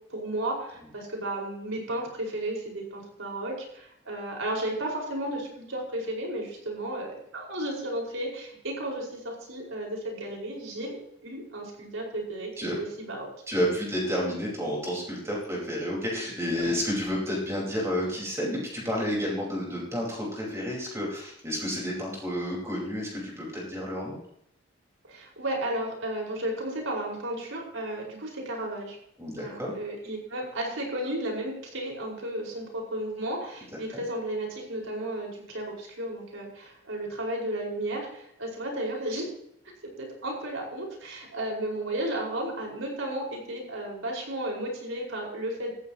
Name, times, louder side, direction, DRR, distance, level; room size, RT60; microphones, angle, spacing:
voice 1, 0.1-12.5 12.8-13.3 16.6-16.7 25.0-29.0 29.4-39.3 39.8-45.7, right 1 dB, 85° right, -1 dB, 5.1 m, -33 dB
voice 2, 13.5-24.2 29.2-29.7 33.9-34.0, equal, 15° right, -3 dB, 4.6 m, -30 dB
18.0 x 14.0 x 3.0 m, 0.75 s
head